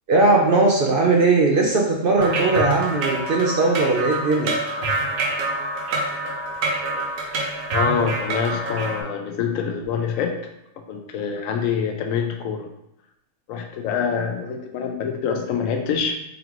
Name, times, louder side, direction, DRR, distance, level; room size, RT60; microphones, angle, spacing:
voice 1, 0.1-4.5, right 3 dB, 60° right, -1 dB, 0.6 m, -19 dB
sound 1, 2.2-9.0, right 2 dB, 80° right, 1.2 m, -26 dB
voice 2, 7.7-10.3 10.9-12.7 13.5-16.1, left 6 dB, 85° left, 4 dB, 1.0 m, -25 dB
4.0 x 3.3 x 2.9 m, 0.81 s
omnidirectional pair, 1.4 m